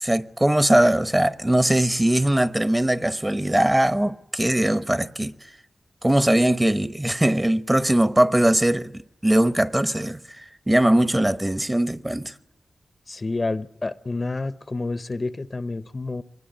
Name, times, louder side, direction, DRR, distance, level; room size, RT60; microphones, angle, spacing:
voice 1, 0.0-5.3 6.0-10.2 10.7-12.3, right 1 dB, 15° right, 1.0 m, -20 dB
voice 2, 13.1-16.2, left 3 dB, 40° left, 0.8 m, -29 dB
24.0 x 20.5 x 9.3 m
wide cardioid pair, 70°, 0 cm